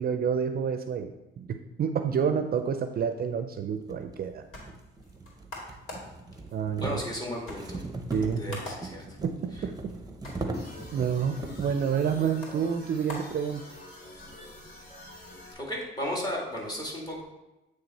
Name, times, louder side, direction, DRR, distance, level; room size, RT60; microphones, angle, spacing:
voice 1, 0.0-4.5 6.5-7.0 8.1-8.6 9.2-9.9 10.9-13.6, right 7 dB, 50° right, 7 dB, 0.5 m, -29 dB
sound 1, 3.0-3.1 3.8-11.8, right 2 dB, 20° right, 0.8 m, -39 dB
sound 2, 4.1-14.1, left 1 dB, 85° left, 2.2 m, -47 dB
voice 2, 6.8-7.8 8.4-9.0 15.6-17.2, left 1 dB, 20° left, -2 dB, 2.0 m, -34 dB
sound 3, 10.5-15.5, left 1 dB, 55° left, 2.4 m, -47 dB
8.7 x 3.3 x 4.1 m, 1.0 s
cardioid pair, 90°, 20 cm